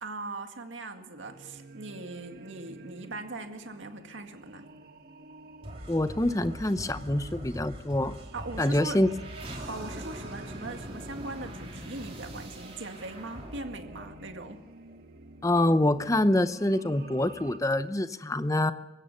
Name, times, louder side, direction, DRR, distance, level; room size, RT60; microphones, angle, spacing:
voice 1, 0.0-4.7 8.3-9.0 9.7-14.6, right 2 dB, 85° right, 6 dB, 2.0 m, -40 dB
sound 1, 1.2-17.6, right 2 dB, 50° right, 1.2 m, -50 dB
sound 2, 5.6-15.0, equal, 30° right, 3.6 m, -42 dB
voice 2, 5.9-8.1 8.6-9.1 15.4-18.7, left 1 dB, 15° left, 12 dB, 0.6 m, -25 dB
26.5 x 16.0 x 6.7 m, 1.1 s
head